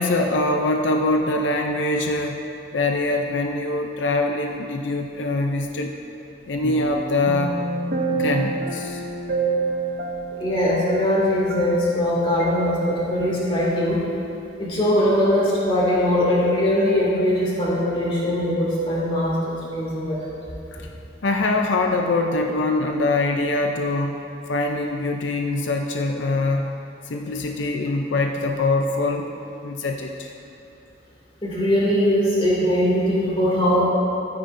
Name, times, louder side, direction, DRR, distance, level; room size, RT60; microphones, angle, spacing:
voice 1, 0.0-2.4 2.7-5.9 6.5-7.6 8.1-9.0 20.7-20.9 21.2-24.2 24.5-26.7 27.1-29.3 29.6-30.3, left 2 dB, 90° left, 3 dB, 0.6 m, -23 dB
sound 1, 6.6-12.1 12.4-12.6, right 3 dB, 50° right, 0.7 m, -28 dB
voice 2, 10.4-14.0 14.6-20.3 20.8-20.9 31.4-33.8, equal, 30° left, -6 dB, 2.5 m, -21 dB
13.5 x 9.5 x 2.7 m, 2.8 s
head